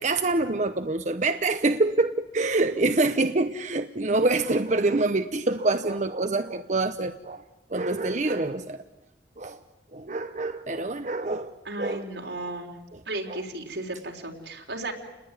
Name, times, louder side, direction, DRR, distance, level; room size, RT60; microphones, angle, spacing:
voice 1, 0.0-7.4 7.7-8.8 9.4-9.6 9.9-12.1 13.3-13.4, right 2 dB, 40° right, 8 dB, 0.9 m, -26 dB
voice 2, 11.6-12.7 13.1-14.9, right 2 dB, 80° right, 1 dB, 3.9 m, -34 dB
30.0 x 20.0 x 9.8 m, 1.0 s
head